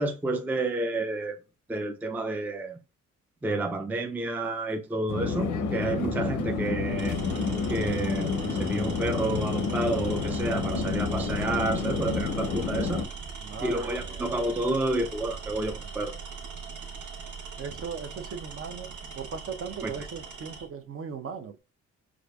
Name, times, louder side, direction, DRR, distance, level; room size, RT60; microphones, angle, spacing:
voice 1, 0.0-1.4 1.7-2.8 3.4-7.2 7.7-13.0 13.6-16.2 19.8-19.9, right 2 dB, 5° right, 0.4 m, -30 dB
Conversation / Chatter / Fixed-wing aircraft airplane, 5.1-13.1, left 4 dB, 85° left, 0.7 m, -29 dB
Tools, 5.8-6.0 6.9-20.7, right 5 dB, 75° right, 1.1 m, -41 dB
voice 2, 13.4-14.3 17.6-21.6, right 6 dB, 45° right, 0.7 m, -38 dB
4.8 x 2.5 x 2.3 m
cardioid pair, 90°, 30 cm